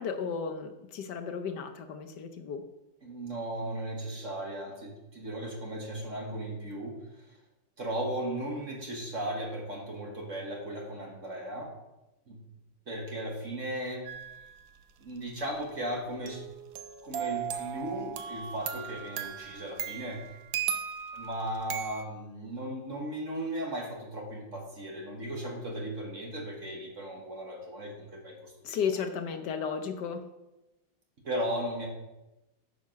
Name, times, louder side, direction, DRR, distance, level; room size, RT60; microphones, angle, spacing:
voice 1, 0.0-2.6 28.6-30.2, left 6 dB, 65° left, 7 dB, 1.2 m, -34 dB
voice 2, 3.0-7.4 7.8-11.7 12.3-12.4 12.9-14.0 15.0-16.4 17.0-20.2 21.1-28.8 31.2-31.9, right 1 dB, 40° right, 0 dB, 1.6 m, -36 dB
sound 1, 14.1-14.5 16.3-22.0, right 9 dB, 75° right, 1.4 m, -37 dB
9.3 x 5.1 x 6.3 m, 0.97 s
omnidirectional pair, 2.2 m